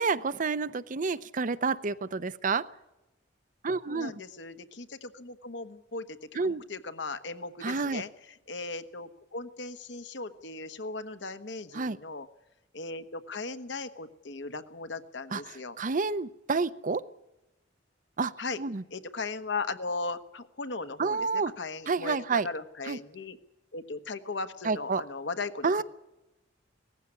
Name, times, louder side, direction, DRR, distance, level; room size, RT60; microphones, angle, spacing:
voice 1, 0.0-2.7 3.6-4.1 6.4-6.6 7.6-8.0 11.7-12.0 15.3-17.0 18.2-18.3 18.6-18.8 21.0-21.5 21.9-22.5 22.9-23.0 24.6-25.0 25.6-25.8, right 4 dB, 45° right, 16 dB, 0.6 m, -29 dB
voice 2, 3.9-8.1 8.5-12.3 12.7-15.8 18.4-18.6 18.9-21.3 21.6-23.4 23.7-25.8, left 3 dB, 70° left, 10 dB, 1.2 m, -37 dB
18.0 x 15.0 x 9.7 m, 0.99 s
head